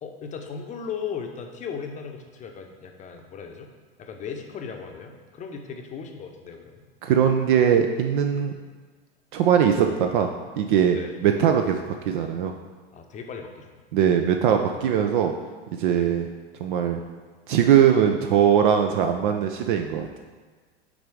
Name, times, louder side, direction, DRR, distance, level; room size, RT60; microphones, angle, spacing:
voice 1, 0.0-3.7 4.0-6.9 10.9-11.1 12.9-13.8 15.9-16.1, left 6 dB, 25° left, 4 dB, 0.8 m, -37 dB
voice 2, 7.0-8.5 9.3-10.3 10.6-11.8 12.1-12.5 13.9-15.3 15.8-16.3 16.6-17.0 17.5-20.2, right 8 dB, 50° right, 5 dB, 0.5 m, -20 dB
6.1 x 4.0 x 4.7 m, 1.4 s
figure-of-eight pair, 90°, 32 cm